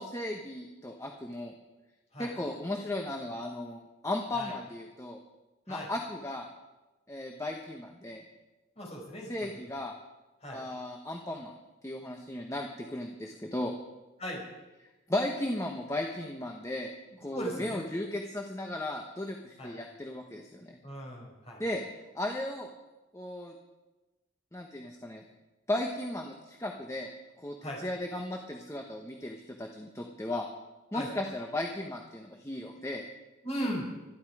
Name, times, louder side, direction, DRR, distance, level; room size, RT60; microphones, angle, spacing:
voice 1, 0.0-1.5 2.2-5.2 5.7-6.5 7.1-8.2 9.2-9.9 10.5-11.5 11.8-13.7 14.8-16.9 17.2-20.8 21.6-21.8 22.1-22.7 23.1-23.5 24.5-25.2 25.7-27.1 27.4-30.5 30.9-33.1, left 1 dB, 15° left, 2 dB, 1.2 m, -36 dB
voice 2, 8.8-9.5 10.4-10.6 14.2-14.4 17.1-17.8 19.6-19.7 20.8-21.6 27.6-27.8 30.9-31.1 33.4-33.9, equal, 30° left, -2 dB, 6.1 m, -37 dB
25.0 x 11.5 x 4.9 m, 1.1 s
head